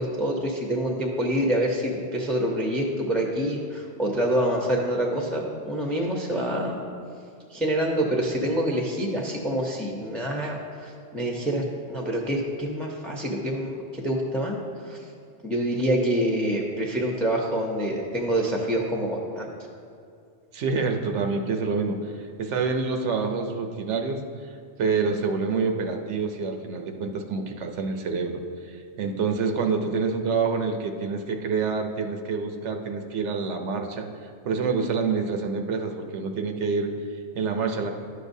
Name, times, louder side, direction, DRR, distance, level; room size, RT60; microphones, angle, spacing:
voice 1, 0.0-6.8 7.5-14.6 14.8-15.1 15.4-19.5, right 1 dB, ahead, -1 dB, 0.5 m, -26 dB
voice 2, 20.5-22.1 22.4-24.2 24.8-34.1 34.4-37.9, right 4 dB, 90° right, 5 dB, 1.0 m, -27 dB
11.5 x 6.7 x 2.7 m, 2.4 s
omnidirectional pair, 1.2 m